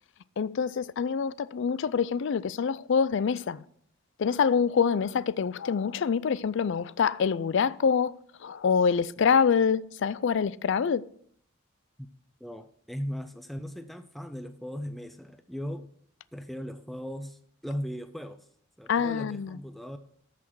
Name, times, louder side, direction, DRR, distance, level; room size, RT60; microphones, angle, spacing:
voice 1, 0.4-3.6 4.2-11.0 18.9-19.6, left 6 dB, 60° left, 0.4 m, -26 dB
voice 2, 12.4-15.9 16.3-18.5 18.8-20.0, equal, ahead, 0.5 m, -38 dB
13.5 x 5.9 x 4.7 m
head